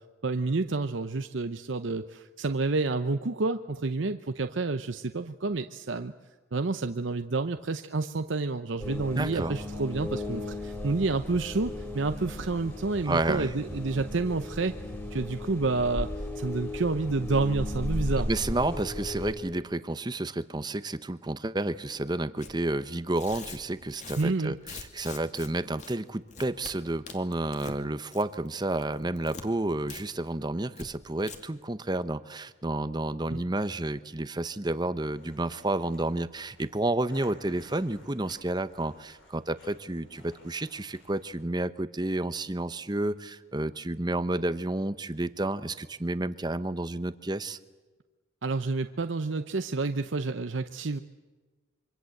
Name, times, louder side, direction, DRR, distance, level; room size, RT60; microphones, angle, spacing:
voice 1, 0.2-6.1 6.5-14.7 15.1-16.1 16.4-18.3 24.2-24.6 33.3-33.4 48.4-51.0, right 3 dB, 70° right, 9 dB, 0.8 m, -29 dB
sound 1, 8.8-19.3, left 1 dB, 15° left, 3.9 m, -36 dB
voice 2, 9.2-9.6 13.0-13.5 18.3-47.6, right 2 dB, 20° right, 13 dB, 0.8 m, -31 dB
Tearing, 22.4-22.5 23.1-25.5 25.8-25.9 26.3-26.7 27.1-27.8 28.1-28.5 28.7-29.4 29.9-30.0 30.3-30.4 30.7-30.9 31.2-31.4, left 4 dB, 35° left, 2.5 m, -43 dB
sound 2, 35.0-41.5, left 1 dB, 75° left, 7.8 m, -57 dB
26.0 x 25.0 x 7.8 m, 1.3 s
head